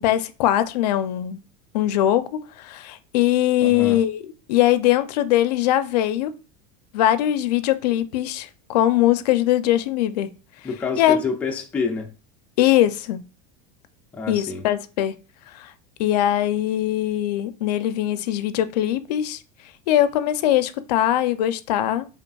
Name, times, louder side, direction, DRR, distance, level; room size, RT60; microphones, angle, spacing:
voice 1, 0.0-1.4 1.7-4.2 4.5-6.3 6.9-10.3 11.0-11.2 12.6-13.2 14.3-15.1 15.5-15.7 16.0-19.4 19.9-22.1, left 13 dB, 80° left, 0.5 m, -21 dB
voice 2, 3.6-4.0 10.6-12.1 14.1-14.6, left 5 dB, 5° left, 0.3 m, -28 dB
5.1 x 2.4 x 2.3 m
supercardioid pair, 170°, 21 cm